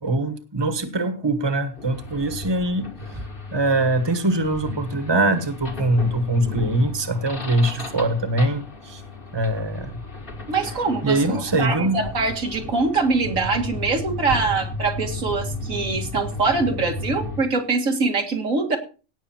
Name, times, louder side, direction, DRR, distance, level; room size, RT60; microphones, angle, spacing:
voice 1, 0.0-9.0 9.3-10.0 11.0-12.0, right 2 dB, 20° right, 9 dB, 1.3 m, -23 dB
sound 1, 1.8-17.4, left 2 dB, 45° left, 2.0 m, -34 dB
voice 2, 10.5-18.8, right 3 dB, 90° right, 3 dB, 2.4 m, -23 dB
17.5 x 6.7 x 4.4 m, 0.35 s
omnidirectional pair, 1.3 m